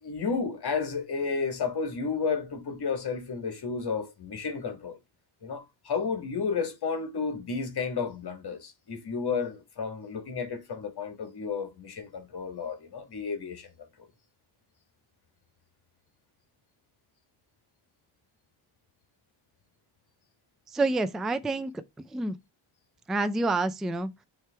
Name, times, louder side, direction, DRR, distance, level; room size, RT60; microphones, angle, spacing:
voice 1, 0.0-5.0 5.4-13.7, left 5 dB, 50° left, 1.7 m, -32 dB
voice 2, 20.7-21.7 22.1-22.3 23.1-24.1, right 2 dB, ahead, 0.3 m, -27 dB
9.5 x 3.4 x 3.3 m
wide cardioid pair, 135°, 49 cm